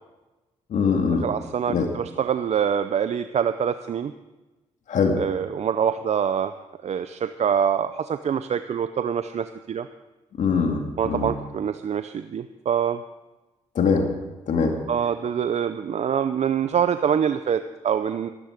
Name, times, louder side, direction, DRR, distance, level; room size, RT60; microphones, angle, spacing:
voice 1, 0.7-1.3 1.7-1.9 4.9-5.2 10.4-11.3 13.8-14.1 14.5-14.8, left 5 dB, 70° left, 3 dB, 2.2 m, -22 dB
voice 2, 1.2-4.1 5.2-6.5 6.8-9.9 11.0-13.0 14.9-18.3, right 8 dB, 55° right, 11 dB, 0.6 m, -25 dB
13.5 x 12.5 x 5.1 m, 1.1 s
supercardioid pair, 65°, 13 cm